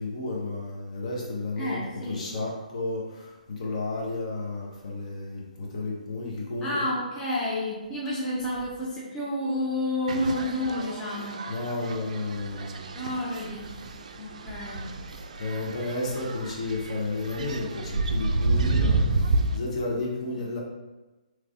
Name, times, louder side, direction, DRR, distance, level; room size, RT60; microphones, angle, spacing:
voice 1, 0.0-1.8 2.1-6.7 11.5-12.8 15.4-19.0 19.5-20.6, left 2 dB, 50° left, -3 dB, 0.9 m, -32 dB
voice 2, 1.6-2.3 6.6-11.5 12.9-13.8 14.2-14.9, left 1 dB, 15° left, -6 dB, 0.6 m, -30 dB
sound 1, 10.1-19.6, right 2 dB, 55° right, 0.3 m, -30 dB
3.3 x 3.0 x 2.5 m, 1.1 s
figure-of-eight pair, 135°, 4 cm